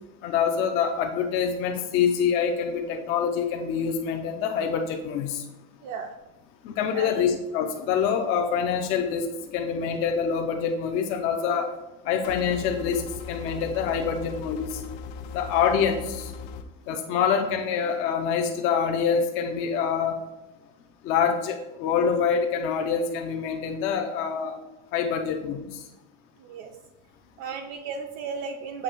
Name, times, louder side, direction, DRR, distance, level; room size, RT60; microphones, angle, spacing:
voice 1, 0.2-5.4 6.6-9.3 9.5-11.7 12.0-14.8 15.3-16.3 16.9-20.2 21.0-24.6 24.9-25.8, left 7 dB, 35° left, 3 dB, 0.4 m, -26 dB
voice 2, 5.8-6.1 6.9-7.3 26.4-26.7 27.4-28.8, right 6 dB, 50° right, 4 dB, 0.5 m, -34 dB
sound 1, 12.2-16.6, left 5 dB, 80° left, 0.7 m, -38 dB
6.9 x 2.7 x 5.4 m, 0.95 s
cardioid pair, 165°, 41 cm